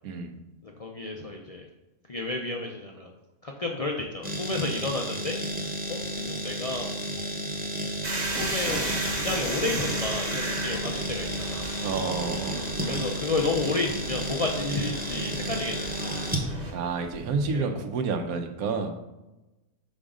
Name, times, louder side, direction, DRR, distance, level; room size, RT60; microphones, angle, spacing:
voice 1, 0.0-0.4 11.8-12.7 16.7-18.9, right 4 dB, 80° right, 6 dB, 1.2 m, -29 dB
voice 2, 0.6-1.7 2.1-3.1 3.4-5.4 5.9-6.9 8.4-8.8 9.1-11.7 12.9-16.1 17.5-17.8, left 2 dB, 70° left, 0 dB, 0.3 m, -31 dB
sound 1, 4.2-17.5, right 1 dB, 10° right, 0.7 m, -32 dB
sound 2, 8.0-16.7, right 2 dB, 30° right, 1.1 m, -35 dB
6.2 x 5.0 x 3.7 m, 1.0 s
omnidirectional pair, 1.5 m